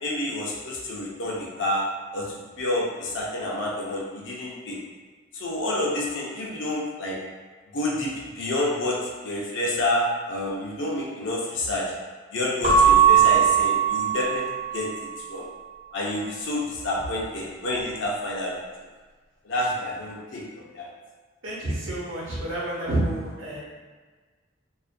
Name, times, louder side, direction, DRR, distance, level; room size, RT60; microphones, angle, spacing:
voice 1, 0.0-1.8 2.1-2.3 2.6-4.8 5.3-7.2 7.7-9.0 9.2-11.9 12.3-14.4 14.7-14.9 15.3-15.5 15.9-18.5 19.4-20.4 20.7-20.9, left 1 dB, 65° left, -3 dB, 0.5 m, -28 dB
Keyboard (musical) / Bell, 12.6-15.1, right 8 dB, 30° right, 0.4 m, -19 dB
voice 2, 21.4-23.6, right 1 dB, 75° right, -6 dB, 0.8 m, -29 dB
2.4 x 2.1 x 2.5 m, 1.4 s
head